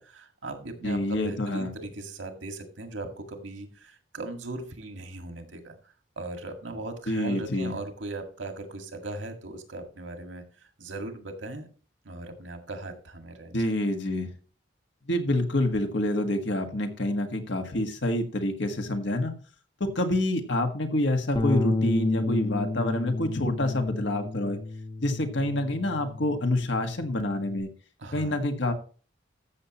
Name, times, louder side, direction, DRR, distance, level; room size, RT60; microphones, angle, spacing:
voice 1, 0.0-11.7 12.0-13.6 28.0-28.4, right 2 dB, 80° right, 5 dB, 1.9 m, -39 dB
voice 2, 0.8-1.7 7.1-7.7 13.5-14.3 15.1-19.3 19.8-24.6 25.0-27.7 28.1-28.7, left 1 dB, 65° left, 6 dB, 1.5 m, -27 dB
Bass guitar, 21.4-27.6, left 3 dB, 25° left, 0.8 m, -31 dB
14.0 x 7.1 x 3.0 m, 0.38 s
head